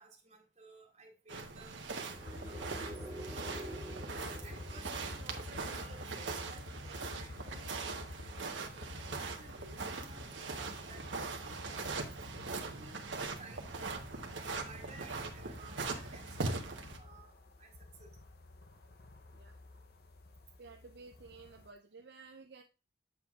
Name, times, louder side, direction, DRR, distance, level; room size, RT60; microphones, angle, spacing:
voice 1, 0.0-2.7 3.3-3.8 4.4-12.2 12.5-13.0 13.4-13.7 14.3-16.7 16.9-17.3 17.6-18.1, right 3 dB, 40° right, -2 dB, 2.0 m, -56 dB
sound 1, 1.3-17.0, right 3 dB, 90° right, 1.0 m, -41 dB
sound 2, 2.0-5.7, right 1 dB, 10° right, 0.5 m, -48 dB
sound 3, 2.2-21.7, left 2 dB, 55° left, 0.7 m, -50 dB
voice 2, 20.6-22.6, right 4 dB, 65° right, 4 dB, 0.6 m, -53 dB
7.7 x 6.8 x 2.4 m, 0.31 s
head